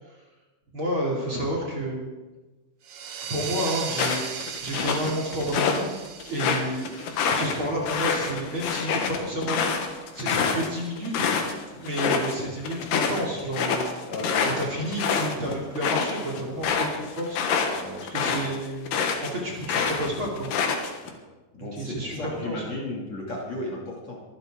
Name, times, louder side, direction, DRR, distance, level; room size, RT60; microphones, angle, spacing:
voice 1, 0.7-2.2 3.3-4.3 4.6-5.8 6.3-6.9 7.3-9.6 10.1-11.3 11.8-13.8 14.4-17.4 18.1-20.5 21.7-22.6, right 1 dB, 35° right, -2 dB, 3.4 m, -30 dB
sound 1, 2.8-8.2, right 6 dB, 65° right, 1.8 m, -37 dB
sound 2, 3.9-5.8 6.2-11.5 11.8-12.3 12.6-19.3 19.6-21.1, left 6 dB, 90° left, 3.6 m, -26 dB
voice 2, 14.1-14.7 17.8-18.1 21.0-21.2 21.5-24.2, left 1 dB, 45° left, -3 dB, 3.7 m, -35 dB
24.0 x 12.0 x 3.9 m, 1.2 s
omnidirectional pair, 4.4 m